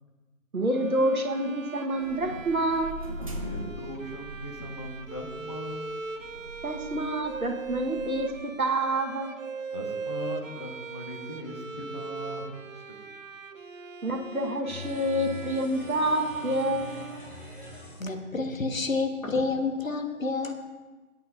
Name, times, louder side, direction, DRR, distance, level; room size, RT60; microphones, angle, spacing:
voice 1, 0.5-3.0 6.6-8.3 8.6-9.3 14.0-17.0, right 1 dB, 85° right, 3 dB, 1.4 m, -27 dB
Bowed string instrument, 0.7-17.9, right 4 dB, 65° right, 0.8 m, -40 dB
sound 1, 2.0-8.4, equal, 25° right, 0.7 m, -41 dB
voice 2, 3.3-6.0 9.7-12.6, equal, 20° left, 1 dB, 1.0 m, -39 dB
sound 2, 14.7-18.0, left 2 dB, 50° left, 2.9 m, -43 dB
voice 3, 18.0-20.5, left 3 dB, 65° left, 5 dB, 1.4 m, -29 dB
18.5 x 8.4 x 2.5 m, 1.2 s
figure-of-eight pair, 150°, 42 cm